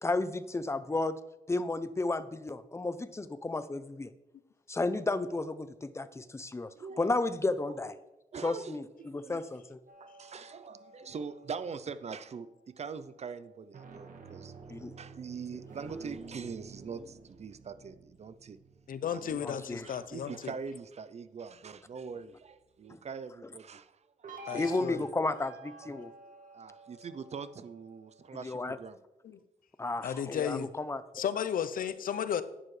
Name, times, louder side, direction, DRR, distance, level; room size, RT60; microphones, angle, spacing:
voice 1, 0.0-1.2 1.5-4.1 4.7-6.7 7.0-8.0 8.4-8.8 9.1-9.8 14.7-14.9 19.4-19.9 24.5-26.1 28.4-28.8 29.8-31.2, left 2 dB, 20° left, 0.6 m, -33 dB
voice 2, 6.8-7.2 7.7-7.8 8.3-9.4 10.0-14.5 15.0-18.6 19.1-19.4 19.8-25.0 26.5-29.0 30.5-30.7 32.1-32.2, right 5 dB, 50° right, 0.6 m, -43 dB
sound 1, 9.9-12.5 13.6-20.4 24.2-28.5, right 3 dB, 65° right, 1.6 m, -50 dB
voice 3, 18.9-20.3 24.5-25.0 29.3-29.4 30.0-30.7 31.1-32.4, left 8 dB, 75° left, 0.6 m, -33 dB
11.0 x 9.8 x 3.3 m
cardioid pair, 100°, 14 cm